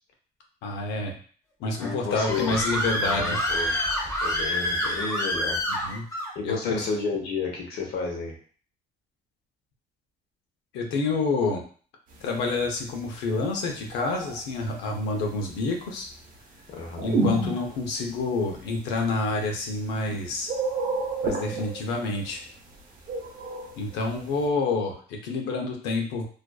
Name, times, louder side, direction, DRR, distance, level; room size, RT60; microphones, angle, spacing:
voice 1, 0.6-1.1 1.6-3.4 5.7-6.1 6.4-6.9 10.7-11.6 12.2-16.1 17.0-20.5 21.2-22.4 23.8-26.3, left 3 dB, 90° left, 2 dB, 0.6 m, -28 dB
voice 2, 1.8-2.6 3.0-3.7 4.2-5.6 6.3-8.3 16.7-17.1, left 4 dB, 65° left, -1 dB, 0.9 m, -31 dB
Screaming, 1.8-6.3, left 1 dB, 20° left, 0.8 m, -27 dB
sound 1, 13.4-14.4 17.0-18.1 18.8-18.9 19.9-20.2 20.5-22.2 23.1-24.0, right 3 dB, 55° right, 0.6 m, -29 dB
2.4 x 2.3 x 2.3 m, 0.44 s
cardioid pair, 110°, 17 cm